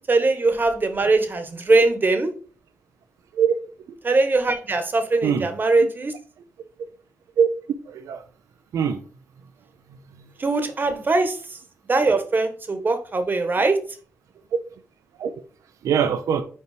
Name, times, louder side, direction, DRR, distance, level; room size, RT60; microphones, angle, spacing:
voice 1, 0.1-2.3 4.0-6.1 10.4-11.6 11.9-13.8, right 3 dB, 35° right, 1.3 m, -21 dB
voice 2, 7.9-8.2 8.7-9.0 15.2-15.3 15.8-16.4, right 7 dB, 80° right, 0.7 m, -21 dB
5.6 x 4.6 x 4.9 m
cardioid pair, 75°, 5 cm